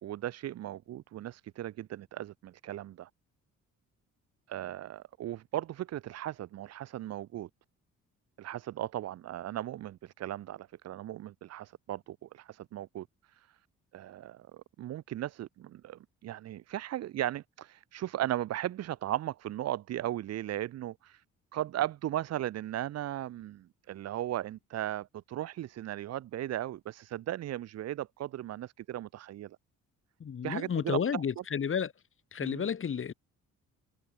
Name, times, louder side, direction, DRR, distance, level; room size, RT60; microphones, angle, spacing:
voice 1, 0.0-3.1 4.5-7.5 8.4-13.1 13.3-13.5 13.9-21.2 21.5-29.6 30.4-31.4 32.4-32.7, right 13 dB, 60° right, 0.6 m, -37 dB
voice 2, 30.2-31.9 32.3-33.1, left 7 dB, 45° left, 2.0 m, -31 dB
cardioid pair, 90°, 30 cm